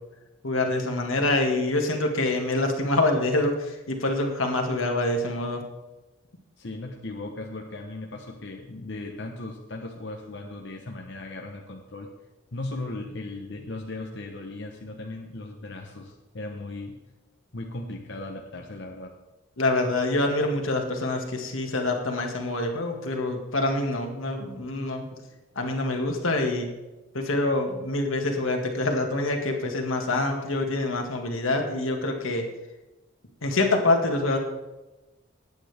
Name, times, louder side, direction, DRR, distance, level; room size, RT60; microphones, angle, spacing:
voice 1, 0.4-5.6 19.6-25.0 25.6-26.7 27.1-32.5 33.4-34.4, left 2 dB, 85° left, 3 dB, 2.0 m, -26 dB
voice 2, 6.6-12.1 12.5-17.1 17.5-19.2, left 2 dB, 60° left, 1 dB, 1.1 m, -37 dB
19.5 x 8.8 x 3.5 m, 1.1 s
head